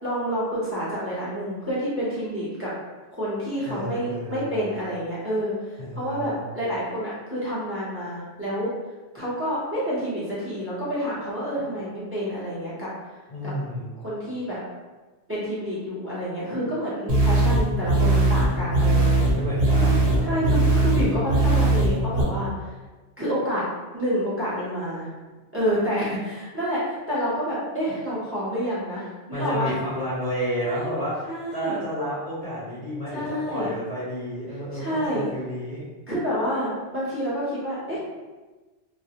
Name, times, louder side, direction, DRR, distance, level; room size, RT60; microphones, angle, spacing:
voice 1, 0.0-2.7 3.2-8.7 9.1-12.9 13.4-13.5 14.0-14.6 15.3-19.2 19.8-22.7 23.2-23.6 23.9-25.1 25.5-29.7 30.6-31.0 31.3-31.8 33.1-33.7 34.7-35.2 36.1-38.0, equal, 15° right, -9 dB, 0.5 m, -28 dB
voice 2, 3.7-4.8 5.8-6.5 13.3-13.9 19.2-20.9 29.3-35.8, equal, 45° left, -9 dB, 0.5 m, -31 dB
sound 1, 17.1-22.2, right 2 dB, 60° right, 0.9 m, -20 dB
2.3 x 2.0 x 2.8 m, 1.2 s
omnidirectional pair, 1.2 m